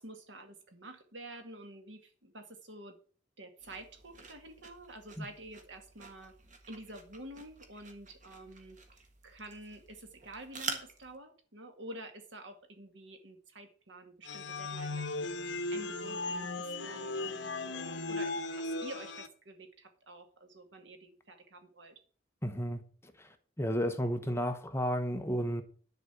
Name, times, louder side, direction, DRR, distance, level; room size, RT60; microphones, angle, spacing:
voice 1, 0.0-3.0 3.4-6.3 6.7-15.1 15.7-22.0, right 1 dB, 70° right, 2.1 m, -49 dB
sound 1, 3.6-11.1, right 4 dB, 40° right, 1.8 m, -47 dB
sound 2, 14.2-19.3, left 2 dB, 65° left, 1.1 m, -37 dB
voice 2, 22.4-22.8 23.2-23.3 23.6-25.6, equal, 15° left, 1.0 m, -32 dB
10.5 x 5.1 x 8.0 m
head